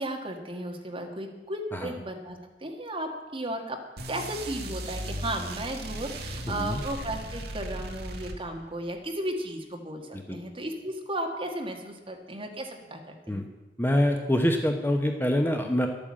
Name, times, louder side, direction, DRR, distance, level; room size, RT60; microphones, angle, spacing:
voice 1, 0.0-3.8 4.1-13.4, right 1 dB, 30° right, 3 dB, 1.7 m, -35 dB
sound 1, 4.0-8.8, right 1 dB, 60° right, 1.5 m, -37 dB
voice 2, 6.5-6.8 10.3-10.4 13.3-13.4 13.8-15.9, equal, 10° left, 3 dB, 0.9 m, -25 dB
11.5 x 8.8 x 7.6 m, 1.1 s
head